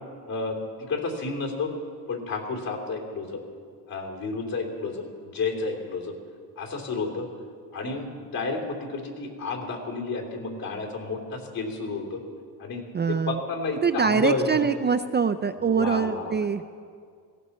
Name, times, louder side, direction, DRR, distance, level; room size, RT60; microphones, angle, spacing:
voice 1, 0.3-1.7 2.1-3.4 3.9-5.0 5.3-6.2 6.6-7.3 7.7-12.2 12.6-12.8 13.3-14.7 15.7-16.4, left 3 dB, 60° left, 1 dB, 3.4 m, -31 dB
voice 2, 12.9-13.4 13.8-16.6, right 6 dB, 25° right, 8 dB, 0.4 m, -24 dB
17.5 x 17.0 x 4.3 m, 2.1 s
cardioid pair, 115°, 40 cm